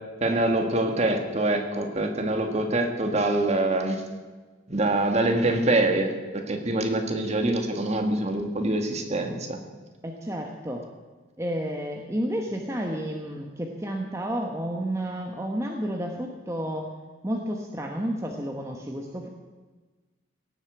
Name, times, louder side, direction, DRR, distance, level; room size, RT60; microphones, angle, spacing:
voice 1, 0.2-4.0 4.7-9.6, right 2 dB, 30° right, 4 dB, 1.6 m, -25 dB
voice 2, 10.0-10.9 11.4-16.9 17.2-19.3, equal, 15° right, 1 dB, 1.0 m, -31 dB
17.5 x 8.1 x 7.9 m, 1.3 s
head